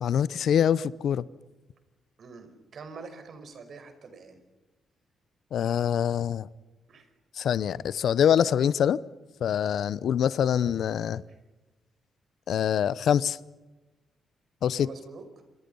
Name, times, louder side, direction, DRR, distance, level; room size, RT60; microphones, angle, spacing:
voice 1, 0.0-1.2 5.5-6.5 7.3-9.0 9.4-11.2 12.5-13.4 14.6-14.9, left 9 dB, 70° left, 18 dB, 0.8 m, -24 dB
voice 2, 2.2-4.4 6.9-7.1 11.2-11.3 14.8-15.2, right 4 dB, 60° right, 9 dB, 5.1 m, -45 dB
28.0 x 25.5 x 5.5 m, 1.1 s
cardioid pair, 70°, 0 cm